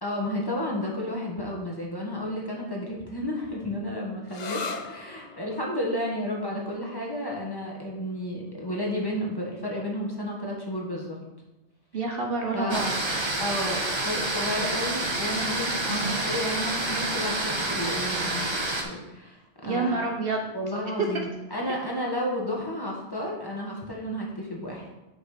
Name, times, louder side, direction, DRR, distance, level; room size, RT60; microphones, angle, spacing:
voice 1, 0.0-11.2 12.5-12.8 13.4-20.0 20.5-24.9, left 1 dB, 20° left, -3 dB, 1.3 m, -32 dB
sound 1, 4.3-11.7, left 4 dB, 45° left, 0.6 m, -43 dB
voice 2, 11.9-13.0 15.9-16.2 19.6-20.5 21.0-21.1, right 3 dB, 55° right, 2 dB, 1.0 m, -28 dB
sound 2, 12.7-18.8, right 2 dB, 25° right, 1.0 m, -28 dB
6.2 x 5.9 x 4.9 m, 0.98 s
omnidirectional pair, 1.2 m